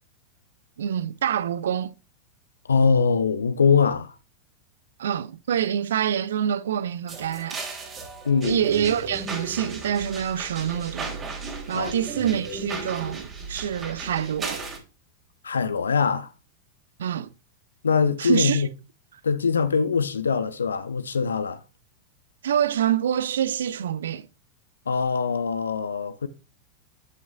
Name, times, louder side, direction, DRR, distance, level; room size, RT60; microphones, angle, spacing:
voice 1, 0.8-1.9 5.0-7.6 8.4-11.2 11.7-14.6 17.0-17.3 18.2-18.6 22.4-24.3, right 9 dB, 65° right, 0.5 m, -26 dB
voice 2, 2.7-4.1 8.2-8.6 11.7-11.9 15.4-16.3 17.8-18.7 19.2-21.6 24.9-26.3, left 5 dB, 70° left, 0.6 m, -22 dB
sound 1, 7.1-14.8, right 4 dB, 25° right, 3.0 m, -35 dB
11.0 x 6.1 x 2.4 m
figure-of-eight pair, 90°, 0 cm